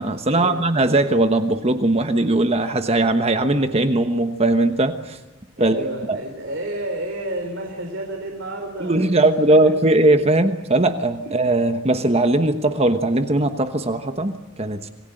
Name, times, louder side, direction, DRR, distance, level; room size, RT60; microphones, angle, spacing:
voice 1, 0.0-5.2 5.6-5.8 6.1-6.2 8.8-14.9, right 2 dB, 30° right, 8 dB, 1.2 m, -19 dB
voice 2, 5.6-9.7 11.3-11.4, right 1 dB, 60° right, 2 dB, 3.7 m, -30 dB
27.5 x 19.5 x 7.8 m, 1.1 s
head